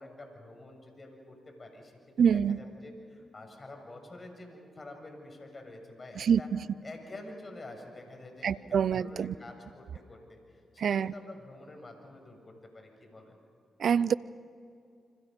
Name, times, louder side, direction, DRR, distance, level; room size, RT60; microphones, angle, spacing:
voice 1, 0.0-1.9 2.3-6.5 6.8-10.4 10.7-13.4, left 2 dB, 40° left, 7.3 m, -48 dB
voice 2, 2.2-2.6 6.2-6.7 8.4-9.3 10.8-11.1 13.8-14.1, right 7 dB, 65° right, 0.5 m, -26 dB
29.0 x 26.0 x 5.4 m
hypercardioid pair, 40°, 0 cm